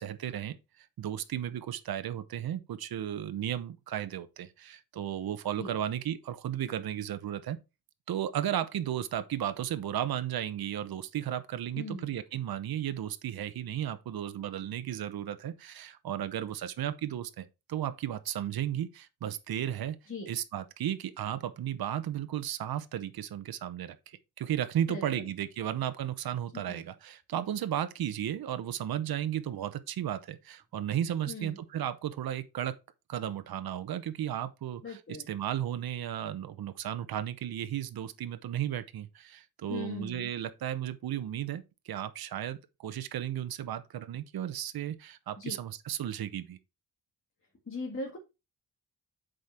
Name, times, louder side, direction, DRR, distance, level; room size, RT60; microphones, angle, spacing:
voice 1, 0.0-7.6 8.1-20.0 20.3-32.8 33.1-35.0 35.3-46.6, right 10 dB, 70° right, 0.9 m, -34 dB
voice 2, 11.8-12.1 20.1-20.3 24.9-25.3 26.5-26.8 31.3-31.6 34.8-35.3 39.7-40.3 45.4-45.5 47.7-48.2, left 2 dB, 35° left, 1.9 m, -39 dB
7.9 x 5.1 x 4.3 m
cardioid pair, 115°, 38 cm